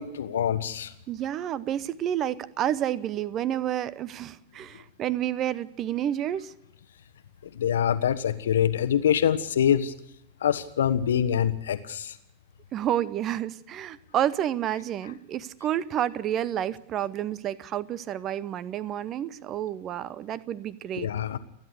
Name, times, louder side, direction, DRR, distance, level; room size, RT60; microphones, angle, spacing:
voice 1, 0.0-0.9 7.5-9.9 10.4-12.1 20.9-21.4, left 9 dB, 65° left, 11 dB, 1.2 m, -25 dB
voice 2, 1.1-6.5 12.7-21.1, right 11 dB, 30° right, 19 dB, 0.9 m, -30 dB
29.5 x 11.0 x 8.1 m, 0.80 s
figure-of-eight pair, 90°, 0 cm